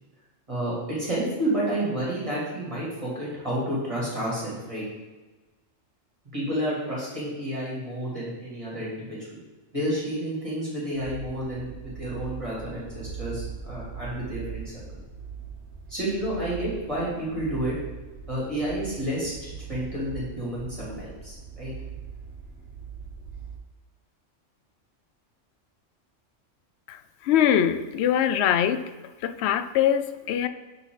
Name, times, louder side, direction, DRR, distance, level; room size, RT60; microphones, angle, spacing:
voice 1, 0.5-4.8 6.3-9.4 9.7-14.7 15.9-17.7 18.3-21.7, right 1 dB, 25° right, -7 dB, 3.0 m, -30 dB
sound 1, 10.9-23.6, right 6 dB, 65° right, 1.5 m, -40 dB
voice 2, 26.9-28.8 29.2-30.5, left 10 dB, 65° left, 11 dB, 0.8 m, -23 dB
12.0 x 4.2 x 4.0 m, 1.2 s
omnidirectional pair, 1.3 m